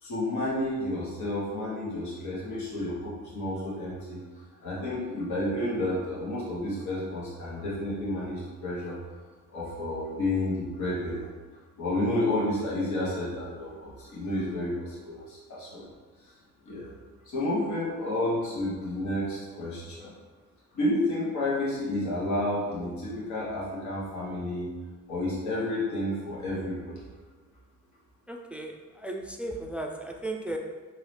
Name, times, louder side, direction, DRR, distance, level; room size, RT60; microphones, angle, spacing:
voice 1, 0.0-4.2 4.6-9.0 9.5-11.3 11.8-15.9 16.6-16.9 17.2-20.1 20.7-24.7 25.1-27.1, left 1 dB, 70° left, -6 dB, 1.4 m, -31 dB
voice 2, 28.3-30.6, right 1 dB, 5° right, 2 dB, 0.3 m, -35 dB
3.9 x 2.9 x 3.3 m, 1.4 s
cardioid pair, 90°, 30 cm